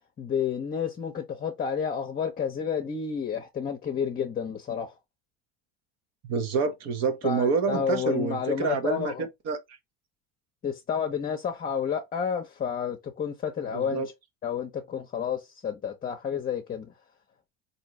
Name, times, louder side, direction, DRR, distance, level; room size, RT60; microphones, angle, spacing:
voice 1, 0.2-5.0 7.2-9.3 10.6-14.0 14.4-16.9, left 7 dB, 30° left, 0.8 m, -30 dB
voice 2, 6.2-9.8 13.7-14.1, right 5 dB, 55° right, 1.1 m, -28 dB
3.7 x 2.8 x 3.0 m
supercardioid pair, 105°, 31 cm